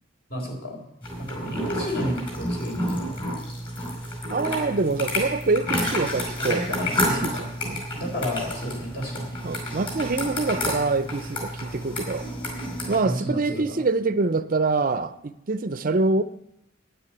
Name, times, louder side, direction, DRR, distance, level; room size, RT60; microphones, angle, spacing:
voice 1, 0.3-0.8 1.2-3.3 6.4-7.4 7.9-9.4 13.0-13.8, equal, 50° left, 4.2 m, -32 dB
sound 1, 1.0-13.0, left 1 dB, 25° left, 4.7 m, -30 dB
voice 2, 1.4-1.8 4.3-6.6 7.0-7.9 9.4-12.3 12.9-16.2, right 3 dB, 45° right, 0.5 m, -25 dB
10.0 x 9.7 x 8.8 m
head